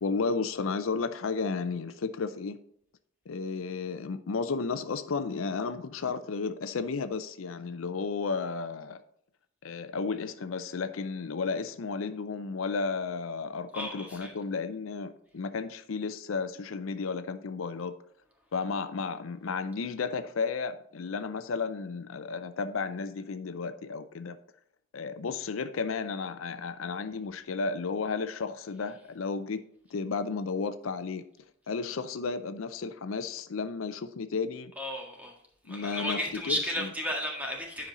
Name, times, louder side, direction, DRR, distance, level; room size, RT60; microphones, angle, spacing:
voice 1, 0.0-2.6 3.3-9.0 9.6-17.9 18.5-24.4 24.9-29.6 29.9-31.2 31.7-34.7 35.7-36.2 36.4-36.9, left 4 dB, 80° left, 10 dB, 0.5 m, -33 dB
voice 2, 13.7-14.3 34.7-35.3 35.7-37.9, equal, 10° right, 0 dB, 1.7 m, -33 dB
10.0 x 5.2 x 4.1 m, 0.68 s
head